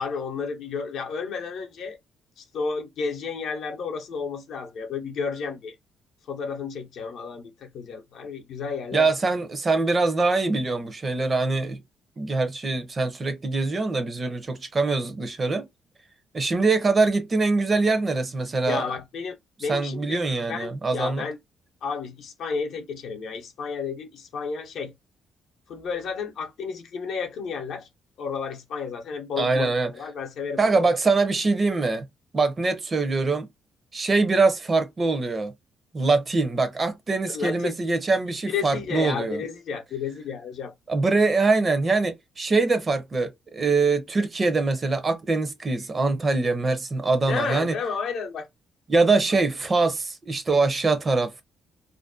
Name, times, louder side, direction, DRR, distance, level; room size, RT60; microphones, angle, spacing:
voice 1, 0.0-2.0 2.4-5.7 6.3-9.1 18.6-20.2 20.5-21.4 21.8-24.9 25.7-27.9 28.2-31.0 37.3-37.8 38.5-40.7 47.3-48.5, left 5 dB, 75° left, 0.6 m, -32 dB
voice 2, 8.9-11.8 12.2-15.7 16.3-18.8 19.7-21.2 29.4-29.9 30.6-32.1 32.3-33.5 33.9-35.5 35.9-39.4 40.9-47.8 48.9-51.4, right 3 dB, 35° right, 0.6 m, -23 dB
2.5 x 2.1 x 2.4 m
cardioid pair, 90°, 0 cm